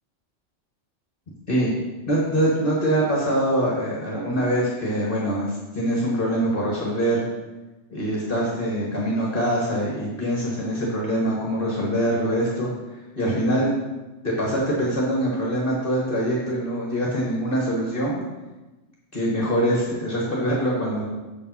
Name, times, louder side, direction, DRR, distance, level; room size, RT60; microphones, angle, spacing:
voice 1, 2.1-7.2 7.9-12.7 13.2-13.7 14.2-18.2 19.1-21.0, right 1 dB, 45° left, -4 dB, 1.6 m, -24 dB
6.8 x 5.3 x 5.7 m, 1.1 s
omnidirectional pair, 1.3 m